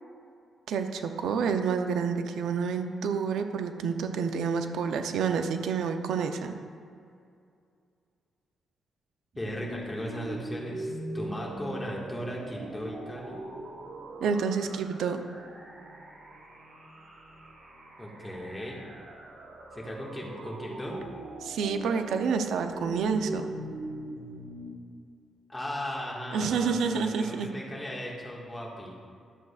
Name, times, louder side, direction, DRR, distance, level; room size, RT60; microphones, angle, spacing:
voice 1, 0.7-6.5 14.2-15.2 21.4-23.5 26.3-27.5, right 6 dB, 80° right, 7 dB, 0.6 m, -28 dB
sound 1, 9.3-24.7, right 1 dB, 50° right, 1.7 m, -41 dB
voice 2, 9.4-13.4 18.0-18.8 19.7-21.0 25.5-29.0, equal, 10° left, -4 dB, 1.7 m, -37 dB
11.5 x 7.5 x 2.4 m, 2.4 s
cardioid pair, 100°, 0 cm